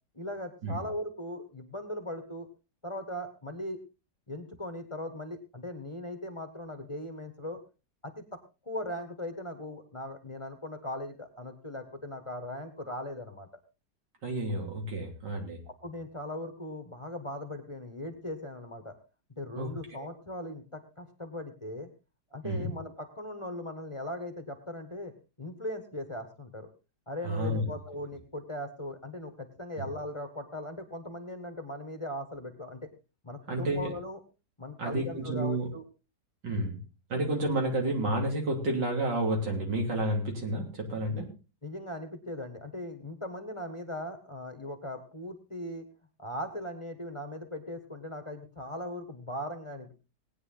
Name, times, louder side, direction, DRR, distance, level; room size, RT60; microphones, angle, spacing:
voice 1, 0.1-2.5 2.8-3.8 4.3-7.6 8.0-8.2 8.6-13.5 15.7-19.0 19.4-21.9 22.3-26.7 27.1-32.9 33.2-34.2 34.6-35.8 41.1-41.2 41.6-45.9 46.2-49.9, left 1 dB, 20° left, 6 dB, 1.4 m, -39 dB
voice 2, 14.2-15.6 19.6-20.1 22.4-22.7 27.2-27.7 33.5-33.9 34.8-35.7 36.4-36.8 37.1-41.3, right 1 dB, 85° right, 1 dB, 3.8 m, -30 dB
19.0 x 9.6 x 3.9 m, 0.32 s
omnidirectional pair, 1.9 m